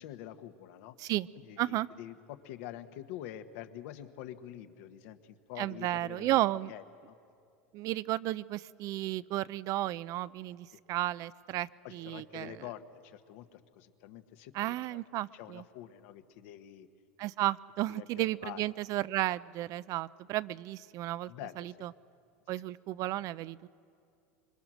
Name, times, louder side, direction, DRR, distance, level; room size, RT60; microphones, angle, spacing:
voice 1, 0.0-1.0 1.4-6.4 6.7-7.1 10.7-10.8 11.8-15.0 15.3-16.9 17.9-18.6 21.3-21.9 22.6-22.7, left 12 dB, 65° left, 9 dB, 1.3 m, -46 dB
voice 2, 1.6-1.9 5.6-6.7 7.7-12.6 14.5-15.6 17.2-21.3 21.6-21.9 22.5-23.6, right 15 dB, 50° right, 18 dB, 0.5 m, -33 dB
25.0 x 22.5 x 6.3 m, 2.4 s
supercardioid pair, 110°, 8 cm